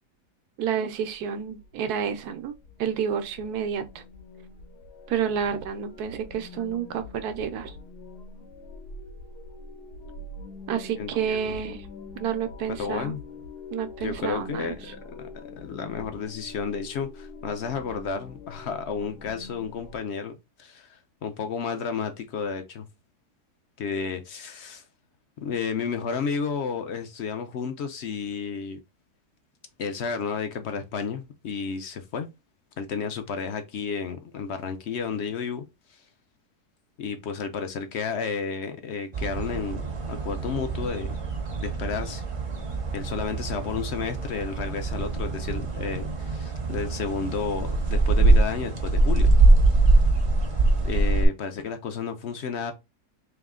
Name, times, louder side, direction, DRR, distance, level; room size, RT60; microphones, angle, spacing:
sound 1, 0.6-20.0, left 3 dB, 80° left, 1.6 m, -44 dB
voice 1, 0.6-4.0 5.1-7.7 10.7-11.9 12.2-13.1 13.7-14.7, right 8 dB, 80° right, 1.2 m, -30 dB
voice 2, 11.0-11.6 12.8-13.2 14.0-15.3 15.6-22.9 23.8-24.8 25.4-28.8 29.8-32.3 32.8-35.6 35.9-36.0 37.0-41.2 41.6-42.2 42.9-49.3 50.8-52.7, left 6 dB, 60° left, 0.7 m, -32 dB
sound 2, 39.1-51.3, right 2 dB, 35° right, 0.5 m, -23 dB
3.5 x 3.0 x 3.6 m
omnidirectional pair, 1.7 m